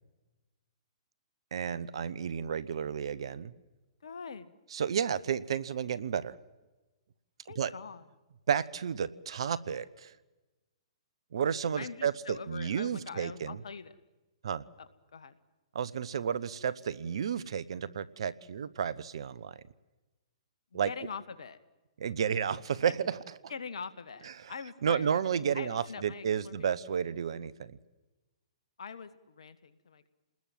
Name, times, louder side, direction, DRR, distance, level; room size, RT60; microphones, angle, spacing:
voice 1, 1.5-3.5 4.7-6.3 7.5-7.7 8.5-10.1 11.3-13.6 14.4-14.6 15.7-19.6 20.7-20.9 22.0-23.2 24.4-24.5 24.8-27.8, right 7 dB, 65° right, 18 dB, 1.3 m, -32 dB
voice 2, 4.0-4.5 7.5-8.1 11.8-13.9 14.8-15.4 20.7-21.6 23.5-25.2 25.5-26.7 28.8-30.1, left 5 dB, 75° left, 13 dB, 2.1 m, -43 dB
29.5 x 20.5 x 7.7 m, 1.1 s
hypercardioid pair, 125°, 3 cm